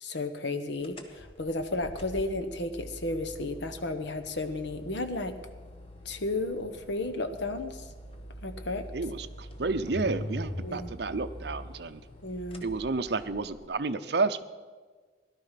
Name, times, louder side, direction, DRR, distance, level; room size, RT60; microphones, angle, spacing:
voice 1, 0.0-5.4 6.0-7.9 8.4-8.9 10.6-10.9 12.2-12.6, left 2 dB, 70° left, 8 dB, 1.1 m, -33 dB
sound 1, 0.8-13.7, equal, 30° left, 1.1 m, -43 dB
voice 2, 8.9-12.0 12.6-14.4, right 3 dB, 60° right, 11 dB, 0.6 m, -31 dB
17.0 x 11.5 x 5.8 m, 1.5 s
head